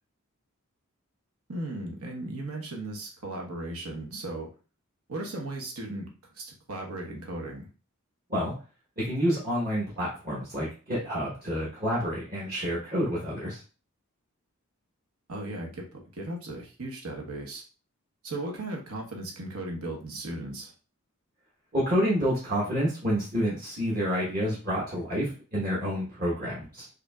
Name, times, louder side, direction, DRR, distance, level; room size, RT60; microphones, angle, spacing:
voice 1, 1.5-4.5 5.1-7.7 15.3-17.6 18.2-20.7, right 2 dB, 80° right, 0 dB, 1.0 m, -36 dB
voice 2, 9.0-13.6 21.7-27.0, equal, 40° right, -7 dB, 1.1 m, -28 dB
4.9 x 2.6 x 2.3 m, 0.35 s
head